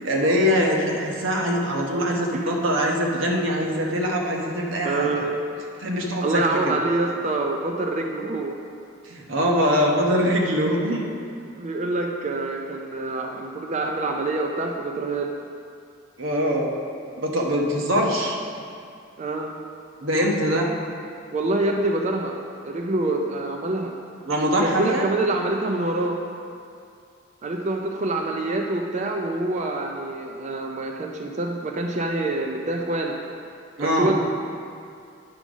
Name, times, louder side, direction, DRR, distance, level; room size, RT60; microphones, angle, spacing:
voice 1, 0.1-5.2 5.8-6.7 9.1-11.0 16.2-16.7 17.2-18.4 20.0-20.7 24.3-25.1 33.8-34.1, equal, 90° right, 0 dB, 1.1 m, -23 dB
voice 2, 4.8-5.3 6.2-8.6 11.6-15.3 19.2-19.5 21.3-22.4 22.6-23.9 24.6-26.2 27.4-33.2 33.8-34.3, right 2 dB, 35° right, 2 dB, 0.4 m, -26 dB
9.4 x 3.9 x 6.1 m, 2.4 s
head